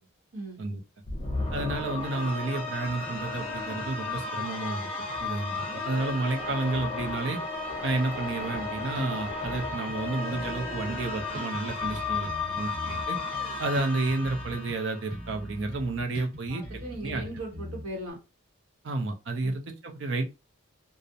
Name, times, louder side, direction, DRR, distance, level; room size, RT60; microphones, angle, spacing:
sound 1, 1.1-15.4, left 3 dB, 25° left, 0.5 m, -34 dB
voice 1, 1.5-4.9 5.2-7.4 7.8-13.2 13.6-16.6 17.0-17.2 18.8-20.2, right 2 dB, 60° right, 4 dB, 0.5 m, -31 dB
Bass guitar, 8.5-10.0 10.3-14.8 15.1-18.1, equal, 45° right, 1.0 m, -42 dB
voice 2, 16.5-18.2 19.4-19.5, right 1 dB, 80° right, -1 dB, 1.1 m, -38 dB
2.4 x 2.0 x 2.7 m, 0.27 s
head